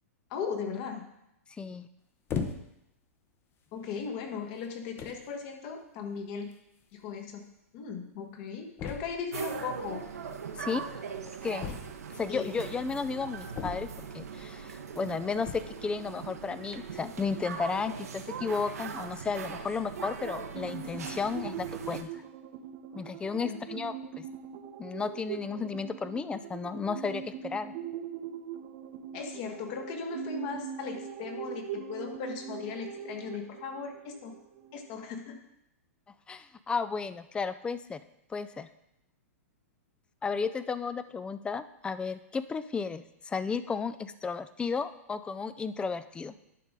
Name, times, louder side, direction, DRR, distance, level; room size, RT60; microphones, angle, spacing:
voice 1, 0.3-1.1 3.7-6.5 6.9-7.5 7.7-10.1 12.3-12.5 23.4-23.6 29.1-34.3 34.7-35.4, left 5 dB, 45° left, 5 dB, 1.4 m, -37 dB
voice 2, 1.6-1.9 10.6-10.9 11.4-11.6 12.2-22.1 23.0-24.2 24.8-27.7 36.3-38.0 38.3-38.7 40.2-46.3, left 5 dB, 10° left, 13 dB, 0.4 m, -33 dB
sound 1, 2.3-2.9 3.7-3.8 4.6-4.7 5.0-5.3 6.5-6.6 6.8-6.9 7.1-7.2 8.8-9.3 11.6-12.3 13.5-14.2 15.4-15.8, left 6 dB, 30° left, 0.8 m, -37 dB
sound 2, 9.3-22.0, right 6 dB, 80° right, 0.9 m, -40 dB
sound 3, 20.5-35.0, right 8 dB, 50° right, 0.7 m, -41 dB
11.0 x 5.3 x 3.7 m, 0.82 s
hypercardioid pair, 120°, 8 cm